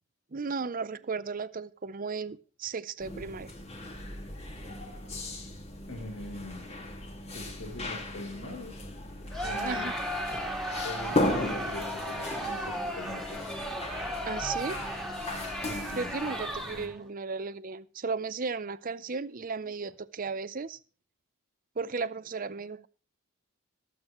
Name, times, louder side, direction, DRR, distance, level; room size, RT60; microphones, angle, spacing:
voice 1, 0.3-3.5 9.6-9.9 14.3-14.8 16.0-20.8 21.8-22.9, right 4 dB, 40° right, 16 dB, 0.6 m, -35 dB
sound 1, 3.0-16.9, left 1 dB, 30° left, 2.0 m, -37 dB
voice 2, 5.9-6.7 7.3-8.8 9.4-9.9 10.8-13.5 15.6-16.1, left 1 dB, 65° left, 0 dB, 4.0 m, -42 dB
Crowd, 9.3-17.0, equal, ahead, 2.2 m, -35 dB
23.0 x 8.1 x 3.1 m, 0.36 s
head